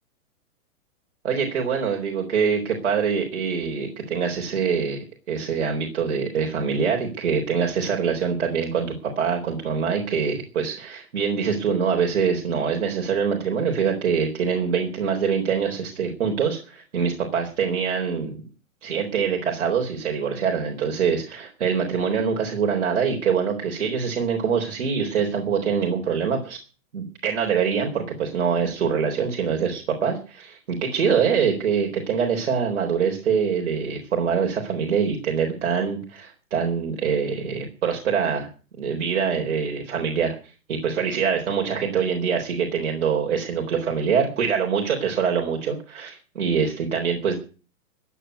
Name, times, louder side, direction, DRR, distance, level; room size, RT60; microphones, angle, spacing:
voice 1, 1.2-18.4 18.8-26.6 26.9-38.5 38.8-40.4 40.7-47.4, right 6 dB, 55° right, 1 dB, 4.1 m, -24 dB
15.0 x 9.0 x 9.4 m, 0.37 s
hypercardioid pair, 180°, 43 cm